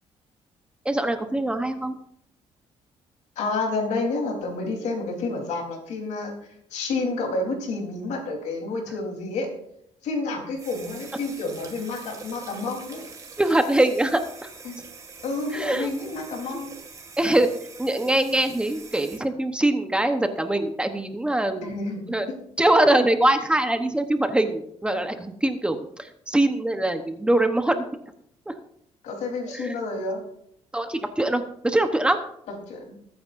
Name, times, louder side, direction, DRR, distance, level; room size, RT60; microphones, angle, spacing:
voice 1, 0.8-2.0 13.4-14.5 15.5-15.9 17.2-17.5 17.8-21.7 22.1-22.3 22.6-27.8 28.5-28.6 29.5-29.7 30.7-32.2, right 1 dB, 10° right, 7 dB, 0.9 m, -23 dB
voice 2, 3.4-6.3 6.7-9.5 10.0-13.0 14.6-14.8 15.2-16.8 21.6-22.1 29.0-30.2 32.7-33.0, left 3 dB, 85° left, 2 dB, 3.7 m, -29 dB
sound 1, 10.5-19.2, right 4 dB, 30° right, 2.1 m, -44 dB
21.5 x 9.4 x 2.6 m, 0.71 s
cardioid pair, 155°, 12 cm